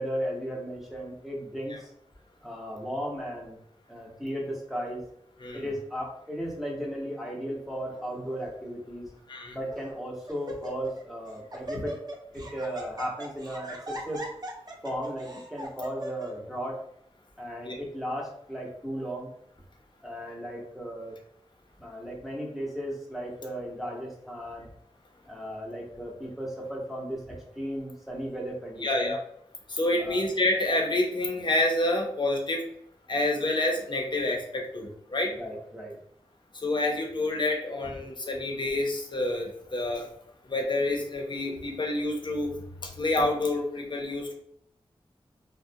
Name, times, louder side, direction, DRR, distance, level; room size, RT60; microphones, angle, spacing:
voice 1, 0.0-1.9 2.4-3.6 3.9-5.1 5.5-9.1 9.5-11.9 12.3-14.3 14.8-16.8 17.4-19.3 20.0-21.1 21.8-24.7 25.2-29.2 30.0-30.2 35.3-36.0, equal, ahead, -2 dB, 0.8 m, -35 dB
Laughter, 8.0-8.4 9.1-9.2 9.7-10.0 10.3-11.0 11.3-16.3, equal, 40° right, 0.5 m, -40 dB
voice 2, 28.8-29.2 29.7-32.6 33.1-35.3 36.6-40.1 40.5-42.5 42.8-44.3, left 2 dB, 50° left, 0 dB, 0.6 m, -28 dB
2.4 x 2.1 x 2.7 m, 0.70 s
wide cardioid pair, 75°, 10 cm